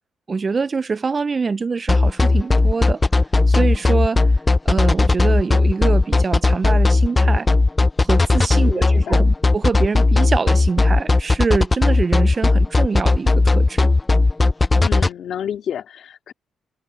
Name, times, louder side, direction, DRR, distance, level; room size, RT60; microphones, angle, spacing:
voice 1, 0.3-3.0 3.5-4.3 4.6-7.5 8.0-13.9, right 4 dB, 35° right, 0.6 m, -24 dB
sound 1, 1.9-15.1, left 3 dB, 20° left, 0.4 m, -15 dB
voice 2, 8.5-9.3 14.8-16.3, left 9 dB, 65° left, 3.1 m, -30 dB
cardioid pair, 90°, 0 cm